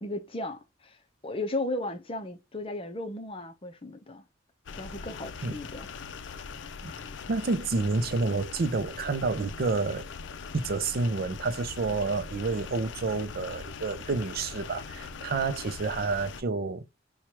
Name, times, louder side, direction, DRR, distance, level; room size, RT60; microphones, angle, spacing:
voice 1, 0.0-0.9 1.2-4.2 4.7-5.9, left 2 dB, 30° left, 0.6 m, -35 dB
sound 1, 4.7-16.4, left 5 dB, 70° left, 0.4 m, -41 dB
voice 2, 7.3-10.1 10.5-16.9, right 3 dB, 50° right, 0.5 m, -29 dB
4.5 x 2.3 x 2.8 m
head